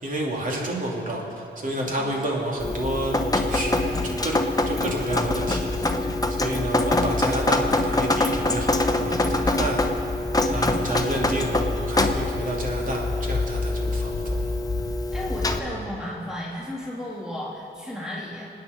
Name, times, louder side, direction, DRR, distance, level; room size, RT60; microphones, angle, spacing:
voice 1, 0.0-4.4 4.7-9.8 10.4-14.5 15.6-15.9, right 1 dB, 50° right, -1 dB, 2.9 m, -30 dB
Drip, 2.6-15.6, left 2 dB, 20° left, 1.0 m, -24 dB
voice 2, 15.1-18.4, left 1 dB, 5° right, -6 dB, 2.9 m, -34 dB
25.5 x 9.5 x 5.2 m, 2.9 s
cardioid pair, 105°, 17 cm